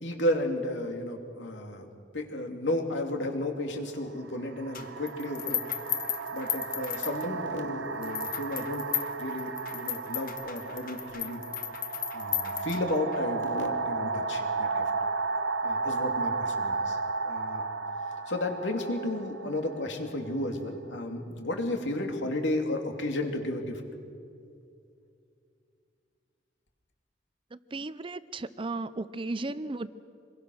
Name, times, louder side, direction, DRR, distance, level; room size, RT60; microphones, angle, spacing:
voice 1, 0.0-1.9 2.1-5.6 6.3-8.9 9.2-11.4 12.1-14.8 15.6-17.0 17.2-17.7 18.3-23.8, left 1 dB, 85° left, 3 dB, 2.7 m, -33 dB
sound 1, 3.1-3.2 4.2-20.8, right 4 dB, 85° right, 1.0 m, -34 dB
sound 2, 4.7-7.6 8.0-13.2, left 11 dB, 50° left, 1.3 m, -35 dB
voice 2, 27.7-29.9, right 2 dB, 30° right, 15 dB, 0.6 m, -35 dB
26.0 x 22.5 x 6.4 m, 2.5 s
head